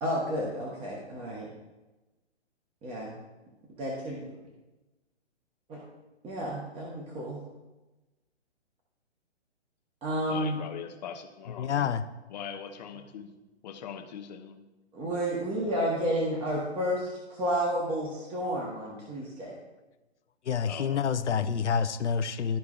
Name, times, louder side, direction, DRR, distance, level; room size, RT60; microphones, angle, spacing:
voice 1, 0.0-1.5 2.8-3.1 3.8-4.3 5.7-5.8 6.2-7.4 10.0-10.6 14.9-17.0 17.3-19.5, equal, 15° right, -4 dB, 1.2 m, -31 dB
voice 2, 10.2-11.9 12.3-13.3 13.6-14.6 20.6-21.1, left 8 dB, 40° left, 5 dB, 0.8 m, -41 dB
voice 3, 11.6-12.0 20.4-22.6, left 7 dB, 75° left, 9 dB, 0.7 m, -28 dB
13.0 x 4.6 x 2.5 m, 1.1 s
figure-of-eight pair, 130°, 35 cm